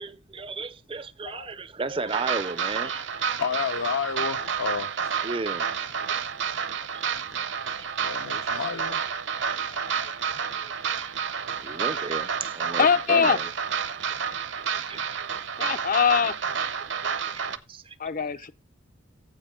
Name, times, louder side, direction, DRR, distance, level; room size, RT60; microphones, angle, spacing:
voice 1, 0.0-3.3 5.2-5.7 6.9-7.0 7.8-7.9 10.2-11.1 11.6-13.5 14.0-14.2 14.5-15.7 17.0-18.0, right 3 dB, 25° right, 0.5 m, -35 dB
sound 1, 2.1-17.6, right 7 dB, 55° right, 0.7 m, -30 dB
voice 2, 3.4-5.1 8.0-9.0, left 5 dB, 70° left, 0.8 m, -30 dB
voice 3, 12.8-13.4 15.6-16.3 18.0-18.5, left 6 dB, 40° left, 0.5 m, -22 dB
15.5 x 5.6 x 3.7 m
head